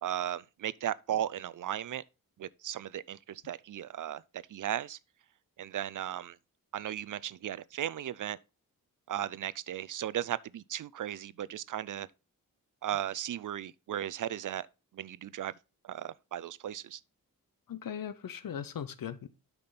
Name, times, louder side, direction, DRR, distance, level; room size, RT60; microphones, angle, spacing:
voice 1, 0.0-2.0 2.4-4.2 4.5-5.0 5.6-6.4 6.7-8.4 9.1-12.1 12.8-14.7 14.9-15.5 15.8-17.0, right 11 dB, 60° right, 0.5 m, -36 dB
voice 2, 17.7-19.3, left 8 dB, 70° left, 0.9 m, -39 dB
8.5 x 5.9 x 4.1 m
cardioid pair, 70°, 35 cm